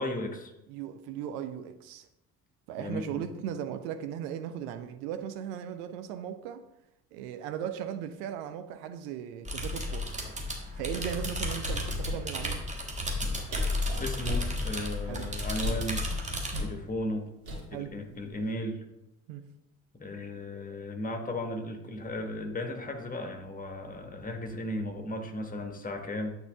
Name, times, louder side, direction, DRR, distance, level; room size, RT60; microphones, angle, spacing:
voice 1, 0.0-0.5 2.8-3.2 14.0-16.1 16.6-17.3 17.7-18.8 19.9-26.4, left 1 dB, 20° left, 4 dB, 1.4 m, -35 dB
voice 2, 0.7-2.1 2.7-6.6 7.1-10.1 10.7-12.7 15.1-15.4 16.1-16.2 16.5-16.7 17.7-17.9 19.3-19.4, right 9 dB, 60° right, 9 dB, 0.6 m, -37 dB
sound 1, 9.5-16.6, left 1 dB, 15° right, 1.7 m, -33 dB
sound 2, 11.6-12.6 13.2-13.3 13.5-14.5 15.5-15.9 16.5-16.7 17.5-17.9 18.3-18.5, equal, 80° right, 1.9 m, -34 dB
9.0 x 4.0 x 3.4 m, 0.87 s
figure-of-eight pair, 50°, 42 cm